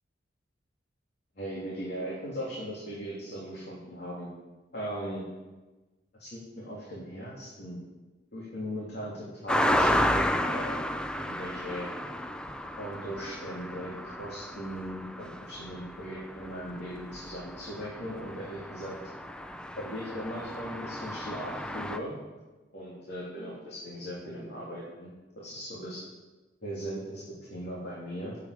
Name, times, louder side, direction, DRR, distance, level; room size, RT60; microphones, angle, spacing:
voice 1, 1.3-4.3 4.7-5.2 6.2-7.8 8.3-10.8 11.2-11.9 12.8-19.0 19.8-22.1 22.7-25.1 25.4-26.0 26.6-28.4, equal, 60° left, -6 dB, 3.0 m, -38 dB
sound 1, 9.5-22.0, equal, 5° left, 0.5 m, -32 dB
17.0 x 8.3 x 5.0 m, 1.2 s
head